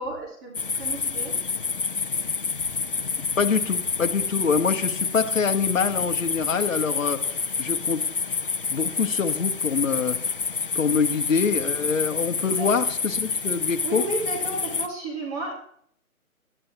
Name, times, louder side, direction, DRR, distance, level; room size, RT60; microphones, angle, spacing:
voice 1, 0.0-1.4 12.6-12.7 13.8-15.5, right 2 dB, 15° right, -2 dB, 1.4 m, -32 dB
sound 1, 0.5-14.9, left 5 dB, 40° left, 0.6 m, -28 dB
voice 2, 3.4-7.2 7.6-8.0 8.7-10.2 10.7-14.0, left 5 dB, 60° left, 8 dB, 1.3 m, -25 dB
19.0 x 11.5 x 2.8 m, 0.66 s
hypercardioid pair, 160°, 44 cm